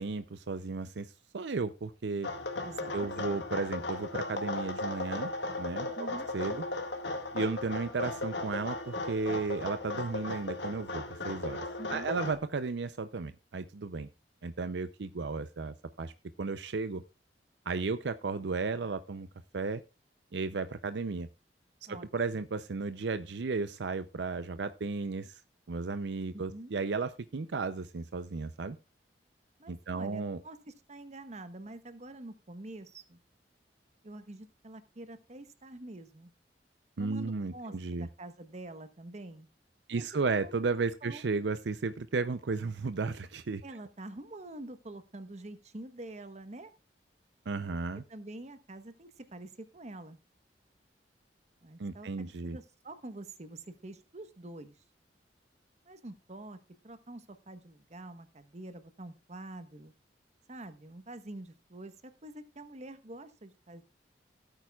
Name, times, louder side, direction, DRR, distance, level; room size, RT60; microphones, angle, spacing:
voice 1, 0.0-2.3 2.9-5.3 5.6-5.9 6.3-6.6 7.3-11.6 11.9-14.1 14.4-16.1 16.4-17.0 17.7-19.3 19.5-19.8 20.3-21.3 21.9-25.4 25.7-28.8 29.7-30.4 37.0-38.1 39.9-43.6 47.5-48.0 51.8-52.6, right 4 dB, 75° right, 11 dB, 0.6 m, -34 dB
sound 1, 2.2-12.3, left 2 dB, 85° left, 1.9 m, -36 dB
voice 2, 2.6-3.4 6.0-6.3 11.8-12.1 21.9-22.1 26.3-26.7 29.6-33.2 34.0-36.3 37.0-39.5 39.9-40.0 40.4-40.5 41.0-41.2 43.6-46.7 48.1-50.2 51.6-54.8 55.9-59.9 60.5-63.8, right 2 dB, 40° right, 11 dB, 1.1 m, -46 dB
16.5 x 8.9 x 2.4 m, 0.29 s
head